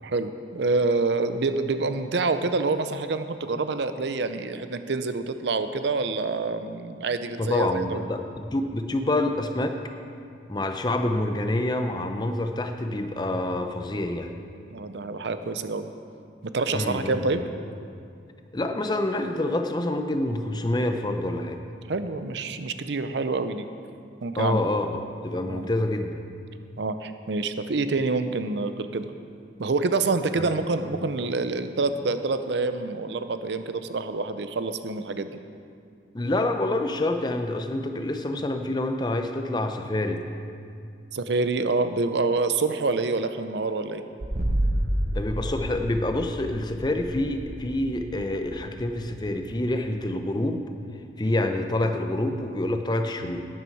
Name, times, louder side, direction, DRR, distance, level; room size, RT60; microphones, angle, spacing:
voice 1, 0.0-8.0 14.7-15.9 16.5-17.4 21.9-23.7 24.2-24.6 25.5-25.7 26.8-29.1 29.6-35.3 41.1-44.0, right 3 dB, 70° right, 10 dB, 0.6 m, -27 dB
voice 2, 7.4-8.2 8.5-9.8 10.5-14.3 16.7-17.2 18.5-21.6 24.4-26.2 30.3-30.5 36.1-40.2 45.1-50.6 51.2-53.5, left 1 dB, 25° left, 6 dB, 0.6 m, -27 dB
sound 1, 44.2-49.8, right 1 dB, 50° right, 0.9 m, -30 dB
11.5 x 9.8 x 4.7 m, 2.4 s
head